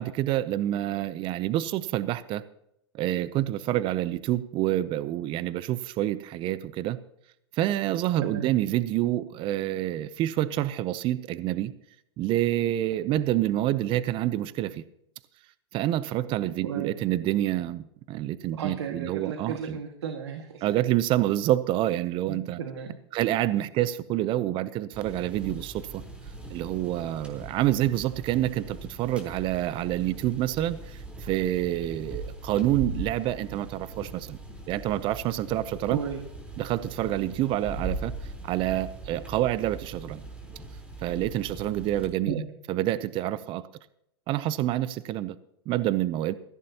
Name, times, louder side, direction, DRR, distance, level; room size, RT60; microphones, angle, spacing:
voice 1, 0.0-2.4 2.9-7.0 7.5-11.7 12.2-14.8 15.7-19.8 20.6-22.6 23.1-26.0 26.5-34.4 34.7-36.0 36.6-40.2 41.0-42.4 42.7-43.6 44.3-45.4 45.7-46.3, right 14 dB, 40° right, 16 dB, 0.6 m, -27 dB
voice 2, 8.2-8.6 16.6-16.9 18.5-20.7 22.3-23.0 35.9-36.2 42.3-42.4, right 7 dB, 80° right, 4 dB, 1.9 m, -34 dB
sound 1, 24.9-42.0, right 2 dB, 10° right, 4.0 m, -40 dB
17.0 x 15.0 x 2.9 m, 0.77 s
hypercardioid pair, 115°, 14 cm